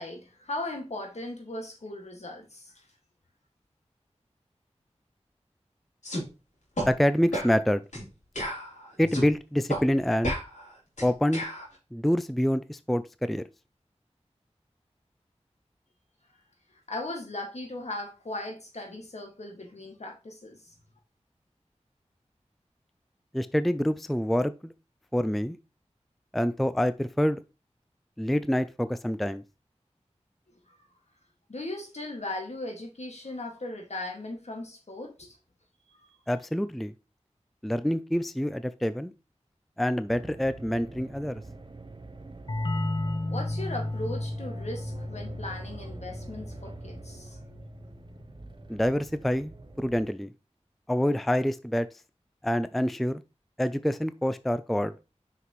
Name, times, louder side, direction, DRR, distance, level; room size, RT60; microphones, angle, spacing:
voice 1, 0.0-2.9 16.9-20.8 30.7-30.8 31.5-35.4 43.3-47.4, left 2 dB, 70° left, 1.9 m, -38 dB
sound 1, 6.0-6.2 6.8-6.9 7.3-7.5 7.9-8.1 8.4-9.3 9.7-9.8 10.2-11.6, equal, 85° left, 3.1 m, -32 dB
voice 2, 6.9-7.8 9.0-10.4 11.0-11.4 11.9-13.4 23.3-24.7 25.1-25.6 26.3-27.4 28.2-29.4 36.3-36.9 37.6-39.1 39.8-41.4 48.7-50.3 50.9-51.9 52.4-53.2 53.6-54.9, equal, ahead, 0.3 m, -26 dB
sound 2, 40.1-50.1, right 2 dB, 40° right, 0.8 m, -45 dB
sound 3, 42.5-47.9, left 1 dB, 40° left, 0.7 m, -34 dB
5.8 x 5.8 x 3.0 m
wide cardioid pair, 55°, 12 cm